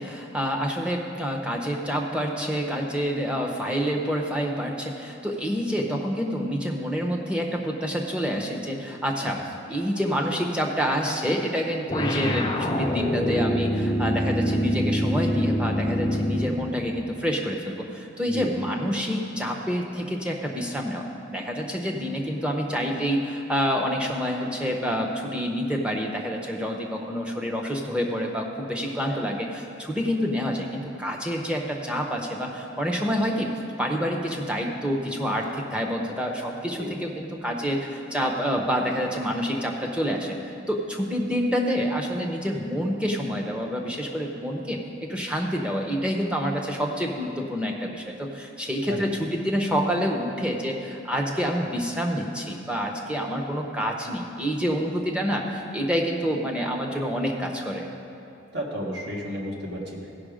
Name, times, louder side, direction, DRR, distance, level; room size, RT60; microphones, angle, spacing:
voice 1, 0.0-33.5 33.8-57.9, equal, 5° right, 0 dB, 0.8 m, -27 dB
sound 1, 11.9-16.6, equal, 20° left, 0.7 m, -25 dB
voice 2, 58.5-60.1, equal, 55° right, -1 dB, 1.6 m, -33 dB
15.5 x 5.9 x 5.0 m, 2.7 s
head